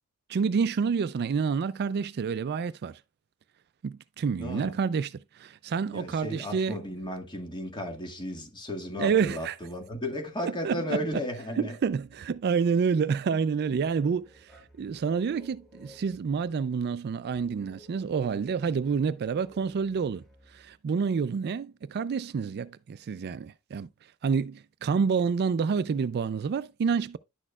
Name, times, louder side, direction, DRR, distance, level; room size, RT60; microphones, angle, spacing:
voice 1, 0.3-3.0 3.8-6.8 9.0-9.6 10.4-11.2 11.6-23.9 24.2-27.2, right 6 dB, 45° right, 0.3 m, -28 dB
voice 2, 4.4-4.7 5.9-11.8, left 1 dB, 20° left, 1.8 m, -34 dB
sound 1, 11.9-12.5 13.4-16.6 17.3-20.8, left 1 dB, ahead, 2.1 m, -56 dB
11.0 x 6.3 x 2.3 m
head